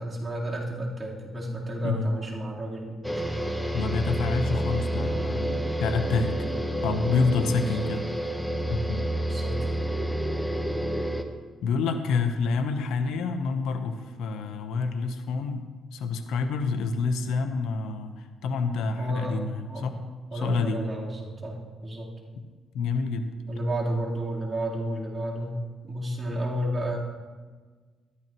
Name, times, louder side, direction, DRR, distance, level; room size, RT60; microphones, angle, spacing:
voice 1, 0.0-3.3 7.6-7.8 9.3-9.7 19.0-22.1 23.5-25.5 25.8-27.0, equal, 30° right, -5 dB, 3.7 m, -32 dB
sound 1, 3.0-11.2, right 1 dB, 5° left, 1.1 m, -29 dB
voice 2, 3.7-8.0 8.7-9.1 11.6-15.6 15.9-20.0 20.3-20.8 22.7-23.3, left 4 dB, 85° left, 7 dB, 0.9 m, -28 dB
13.5 x 13.0 x 3.1 m, 1.4 s
cardioid pair, 90°, 0 cm